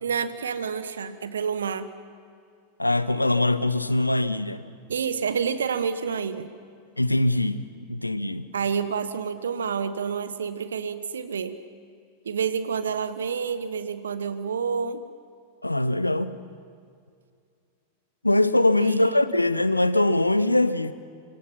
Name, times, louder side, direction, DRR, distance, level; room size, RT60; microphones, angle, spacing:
voice 1, 0.0-1.9 4.9-6.5 8.5-11.6 12.2-15.0 18.8-19.2, right 6 dB, 70° right, 12 dB, 1.2 m, -28 dB
voice 2, 2.8-4.6 7.0-7.6 7.9-8.5 15.6-16.4 18.2-20.9, left 2 dB, 85° left, 14 dB, 0.8 m, -22 dB
25.5 x 25.5 x 5.9 m, 2.3 s
figure-of-eight pair, 90°, 0 cm